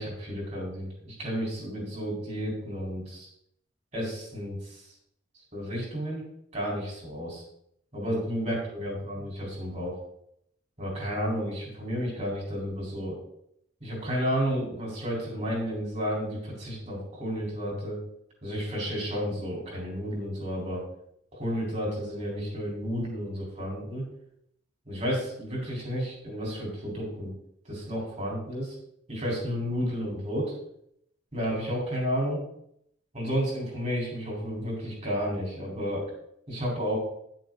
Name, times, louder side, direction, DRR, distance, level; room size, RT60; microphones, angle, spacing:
voice 1, 0.0-3.3 3.9-4.8 5.5-6.2 6.5-7.4 7.9-10.0 10.8-13.2 13.8-18.0 18.4-20.8 21.3-24.0 24.9-27.3 27.7-28.8 29.1-30.5 31.3-32.4 33.1-36.1 36.5-37.0, equal, 35° right, -2 dB, 3.9 m, -32 dB
10.5 x 7.0 x 3.9 m, 0.73 s
head